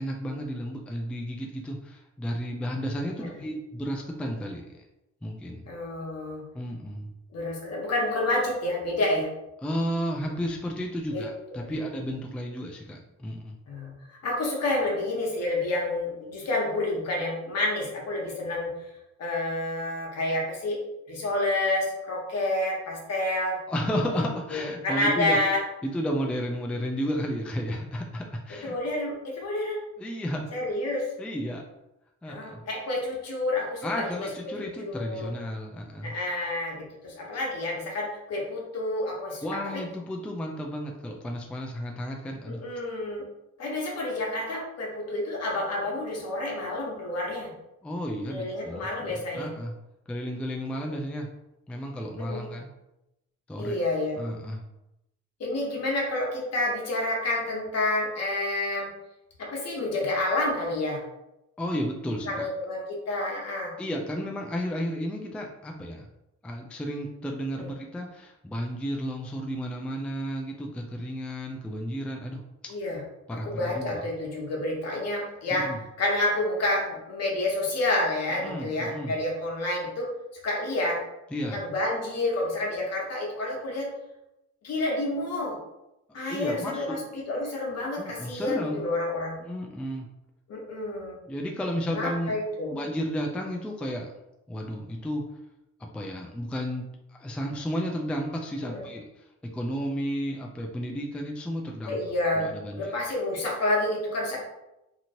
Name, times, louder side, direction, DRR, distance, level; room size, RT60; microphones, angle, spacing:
voice 1, 0.0-4.7 5.2-5.7 6.5-7.1 9.6-13.6 23.7-25.4 25.8-28.8 30.0-30.5 31.2-31.6 32.2-32.6 33.8-36.1 39.4-42.6 47.8-49.7 50.1-51.3 51.7-52.7 53.5-53.8 54.2-54.6 61.6-62.3 63.8-66.1 66.4-72.5 73.3-74.0 75.5-75.8 78.4-79.1 81.3-81.6 86.3-87.0 88.0-88.8 89.4-90.1 91.3-92.3 92.7-94.1 94.5-95.3 95.9-96.9 97.2-102.0 102.5-103.0, equal, 5° left, 1 dB, 0.3 m, -32 dB
voice 2, 5.6-6.4 7.3-9.3 11.1-11.3 13.7-18.7 19.2-20.8 21.1-23.6 24.1-24.2 24.5-25.6 28.6-29.8 30.5-31.1 32.2-34.3 34.6-35.3 36.0-39.8 42.5-43.3 43.6-47.5 48.3-49.5 52.2-52.4 53.6-54.2 55.4-58.9 59.4-61.0 62.3-63.7 67.5-67.7 72.7-73.0 73.3-75.7 76.0-80.1 80.4-81.0 81.4-83.9 84.6-85.6 86.1-89.3 90.5-91.2 91.9-92.7 98.7-98.8 101.9-104.4, left 2 dB, 55° left, -2 dB, 1.0 m, -29 dB
2.9 x 2.9 x 2.6 m, 0.91 s
cardioid pair, 90°, 30 cm